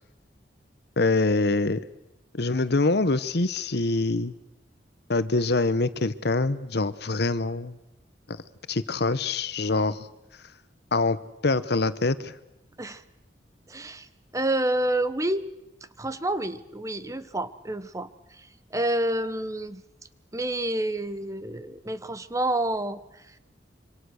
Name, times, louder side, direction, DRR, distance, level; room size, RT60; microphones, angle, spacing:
voice 1, 1.0-1.8 2.4-4.3 5.1-7.8 8.7-10.1 10.9-11.2 11.4-12.3, left 3 dB, 65° left, 15 dB, 1.0 m, -24 dB
voice 2, 13.7-14.1 14.3-15.5 16.0-19.8 20.3-23.4, right 1 dB, 20° right, 13 dB, 1.1 m, -29 dB
26.0 x 25.5 x 6.5 m, 0.90 s
head